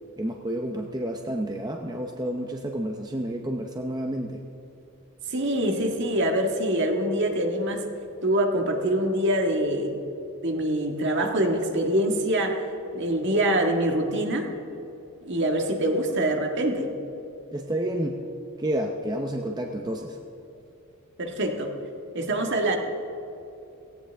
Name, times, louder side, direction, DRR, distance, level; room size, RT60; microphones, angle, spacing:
voice 1, 0.2-4.4 17.5-18.2 18.6-20.2, right 1 dB, 20° right, 2 dB, 0.7 m, -30 dB
voice 2, 5.3-7.9 8.2-9.9 10.4-12.6 12.9-14.5 15.2-16.9 21.2-21.7 22.1-22.8, right 1 dB, 55° right, 3 dB, 1.7 m, -24 dB
17.5 x 17.5 x 3.5 m, 2.9 s
head